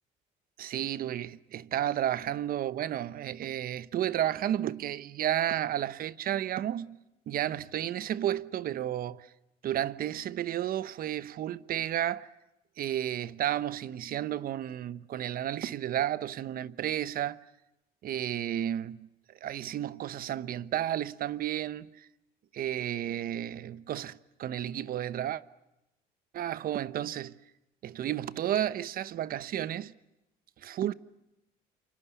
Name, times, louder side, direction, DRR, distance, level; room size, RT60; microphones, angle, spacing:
voice 1, 0.6-7.0 7.3-9.3 9.6-12.3 12.8-17.4 18.0-22.1 22.5-25.4 26.3-27.4 27.8-29.9 30.6-30.9, right 11 dB, 60° right, 1.0 m, -32 dB
29.0 x 25.0 x 7.2 m
cardioid pair, 110°, 17 cm